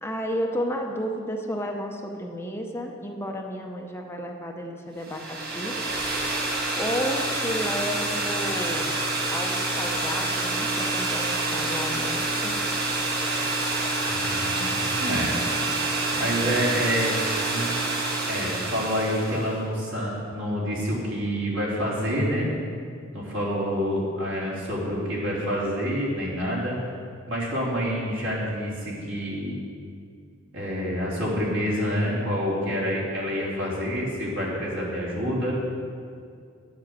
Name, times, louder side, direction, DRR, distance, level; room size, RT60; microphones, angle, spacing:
voice 1, 0.0-5.8 6.7-9.0 9.3-12.6, equal, 10° left, 2 dB, 0.7 m, -32 dB
sound 1, 5.0-19.5, right 2 dB, 50° right, 1.9 m, -27 dB
voice 2, 14.1-15.3 16.1-17.1 17.4-17.7 18.3-22.5 23.1-26.8 27.3-29.5 30.5-35.6, equal, 70° right, -5 dB, 3.4 m, -27 dB
9.9 x 7.5 x 7.4 m, 2.3 s
head